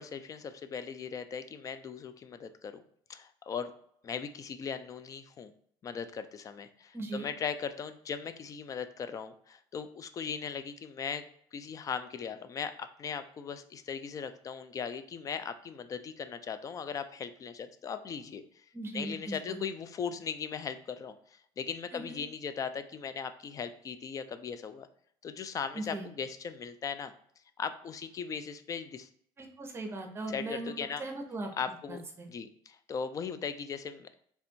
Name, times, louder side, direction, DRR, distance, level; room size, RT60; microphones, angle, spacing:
voice 1, 0.0-2.8 3.1-3.7 4.0-5.5 5.8-11.3 11.5-18.6 18.9-24.9 25.2-27.1 27.6-29.1 30.3-31.0 31.6-32.0 32.3-34.1, left 6 dB, 35° left, 11 dB, 0.4 m, -38 dB
voice 2, 6.9-7.3 18.7-19.6 21.9-22.2 25.7-26.1 29.4-30.7 31.0-31.5 31.9-32.3, right 2 dB, 25° right, 3 dB, 0.9 m, -38 dB
3.4 x 2.5 x 4.3 m, 0.66 s
supercardioid pair, 100°, 10 cm